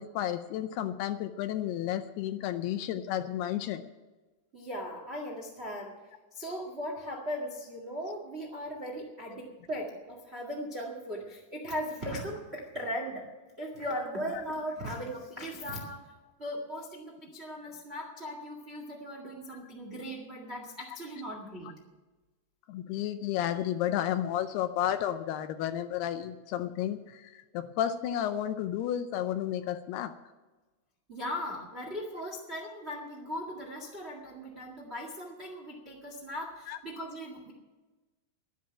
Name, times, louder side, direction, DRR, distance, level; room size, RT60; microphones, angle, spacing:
voice 1, 0.0-3.9 22.7-30.1 36.7-36.8, left 11 dB, 80° left, 10 dB, 2.4 m, -32 dB
voice 2, 4.5-6.0 6.3-13.3 13.6-16.1 16.4-21.7 31.1-37.5, equal, 65° right, 0 dB, 0.6 m, -38 dB
11.5 x 10.5 x 8.6 m, 1.2 s
omnidirectional pair, 5.0 m